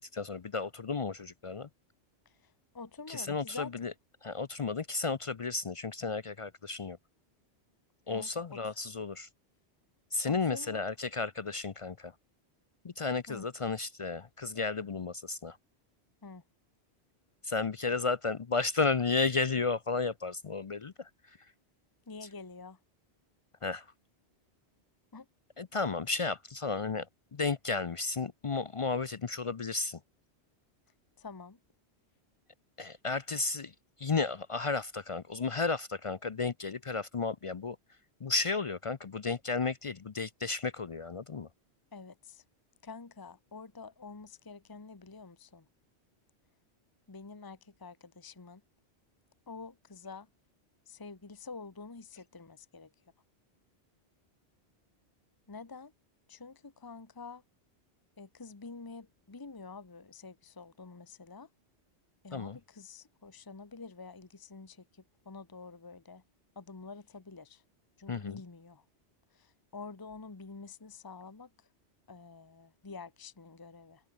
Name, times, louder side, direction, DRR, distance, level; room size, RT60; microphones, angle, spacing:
voice 1, 0.0-1.7 3.1-3.9 4.2-7.0 8.1-9.3 10.1-12.1 12.8-15.6 17.4-21.1 22.2-22.3 23.6-23.9 25.6-27.1 27.3-30.0 32.8-33.7 34.0-37.8 38.2-41.5 62.3-62.6 68.1-68.4, left 4 dB, 40° left, 0.5 m, -33 dB
voice 2, 2.7-3.7 8.1-8.3 10.3-10.8 13.3-13.4 16.2-16.4 22.1-22.8 25.1-25.2 31.2-31.6 41.9-42.1 42.8-45.6 47.1-48.6 49.5-50.3 50.9-52.9 55.5-55.9 56.3-57.4 58.2-61.5 62.2-64.8 65.3-66.2 66.6-67.5 68.0-68.8 69.7-71.5 72.1-74.0, left 4 dB, 20° left, 1.0 m, -47 dB
omnidirectional pair, 1.1 m